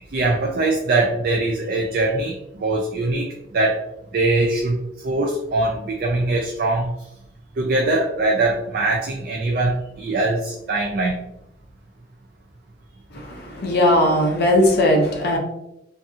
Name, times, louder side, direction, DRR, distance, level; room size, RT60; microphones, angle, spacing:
voice 1, 0.1-3.8 4.1-4.8 5.0-6.9 7.6-11.3, right 2 dB, 55° right, 0 dB, 0.4 m, -22 dB
voice 2, 13.1-15.4, left 1 dB, 55° left, 0 dB, 0.5 m, -18 dB
2.6 x 2.6 x 2.4 m, 0.86 s
head